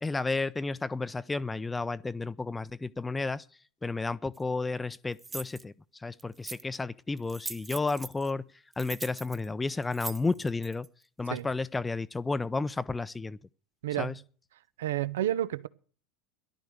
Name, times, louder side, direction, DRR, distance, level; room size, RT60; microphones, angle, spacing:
voice 1, 0.0-3.4 3.8-5.7 6.0-8.5 8.8-10.9 11.2-13.4 14.0-14.1, left 3 dB, 15° left, 0.6 m, -32 dB
sound 1, 4.3-4.4 5.2-5.6 6.2-6.8 7.2-8.3 8.7-10.9, right 3 dB, 15° right, 1.0 m, -41 dB
voice 2, 13.8-14.2 14.8-15.7, right 12 dB, 70° right, 0.8 m, -30 dB
14.0 x 11.5 x 6.6 m
figure-of-eight pair, 80°, 0 cm